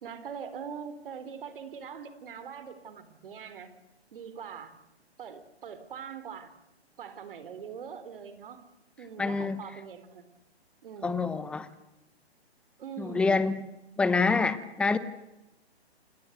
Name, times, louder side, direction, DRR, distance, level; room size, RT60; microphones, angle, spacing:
voice 1, 0.0-3.7 4.1-4.7 5.2-6.5 7.0-8.6 9.0-10.3 10.8-11.3 12.8-13.3, right 7 dB, 55° right, 12 dB, 4.0 m, -42 dB
voice 2, 9.2-9.6 11.0-11.7 13.0-13.6 14.0-15.0, left 4 dB, 5° left, 13 dB, 0.9 m, -26 dB
28.0 x 21.0 x 8.0 m, 0.93 s
hypercardioid pair, 150°, 33 cm